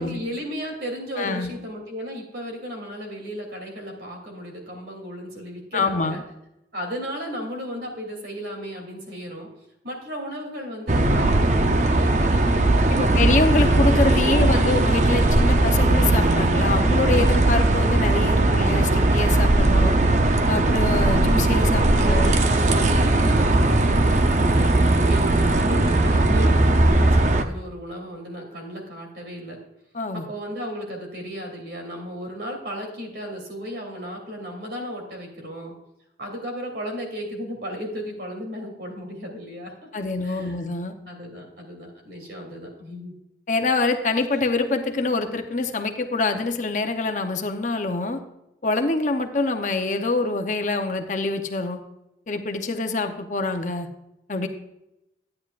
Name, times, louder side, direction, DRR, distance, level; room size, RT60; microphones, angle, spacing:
voice 1, 0.0-6.2 6.7-9.5 9.8-14.6 21.5-29.6 30.1-35.7 36.2-39.9 40.2-40.6 41.0-43.1, equal, 70° right, 1 dB, 2.8 m, -35 dB
voice 2, 1.2-1.5 5.7-6.2 12.9-19.9 20.5-22.3 23.2-23.4 29.9-30.3 39.9-40.9 43.5-48.2 48.6-51.8 52.3-53.9 54.3-54.5, left 3 dB, 45° left, 6 dB, 0.7 m, -25 dB
sound 1, 10.9-27.4, right 2 dB, 40° right, 0.6 m, -19 dB
11.5 x 9.6 x 2.4 m, 0.88 s
head